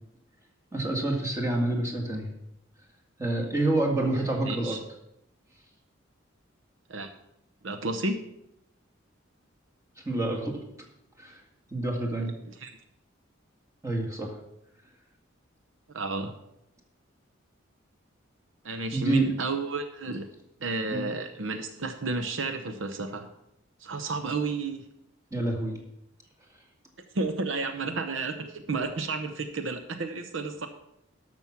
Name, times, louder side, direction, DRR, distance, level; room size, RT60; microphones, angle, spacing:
voice 1, 0.7-2.3 3.2-4.8 10.0-10.6 11.2-11.4 11.7-12.3 13.8-14.3 18.9-19.3 20.9-21.0 25.3-25.8, right 2 dB, 15° right, 0 dB, 2.0 m, -27 dB
voice 2, 4.2-4.8 6.9-7.1 7.6-8.3 12.4-12.7 15.9-16.3 18.6-20.3 20.6-23.3 23.8-24.9 27.1-30.7, right 3 dB, 70° right, 8 dB, 0.8 m, -32 dB
13.0 x 6.1 x 5.9 m, 0.82 s
head